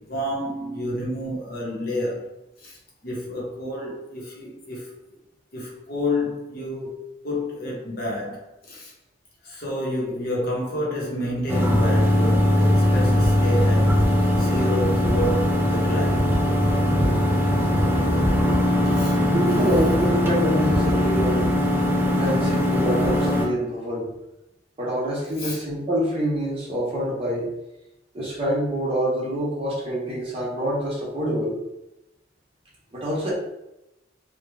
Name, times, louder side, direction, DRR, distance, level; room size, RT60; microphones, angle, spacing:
voice 1, 0.0-2.3 2.6-2.8 3.0-4.9 5.5-7.0 7.2-8.9 9.4-14.0 14.3-16.3 18.9-19.2 25.4-25.6, left 1 dB, 55° left, 1.0 m, -29 dB
sound 1, 11.5-23.5, left 1 dB, 10° right, 0.5 m, -20 dB
voice 2, 19.1-21.5 22.2-24.1 24.8-27.5 28.1-31.6 32.9-33.3, equal, 30° right, 1.1 m, -26 dB
3.1 x 2.4 x 3.2 m
head